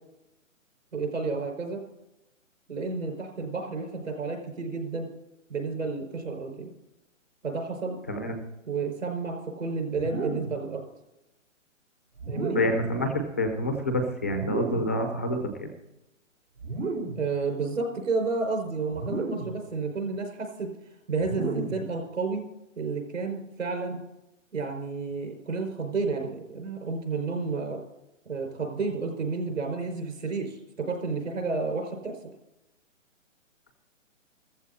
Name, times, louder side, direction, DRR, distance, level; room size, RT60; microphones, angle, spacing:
voice 1, 0.9-1.8 2.7-5.1 5.5-6.7 7.4-8.0 8.7-10.8 12.3-12.6 17.2-20.7 21.1-22.5 22.8-24.0 24.5-27.8 28.3-32.2, right 4 dB, 75° right, 3 dB, 5.2 m, -31 dB
sound 1, 9.9-10.6 12.2-12.9 14.3-15.0 16.6-17.3 18.9-19.6 21.2-21.9, right 3 dB, 90° right, 4.3 m, -33 dB
voice 2, 12.5-15.7, left 1 dB, 10° left, 6 dB, 0.5 m, -27 dB
14.5 x 14.0 x 4.1 m, 0.93 s
hypercardioid pair, 165°, 39 cm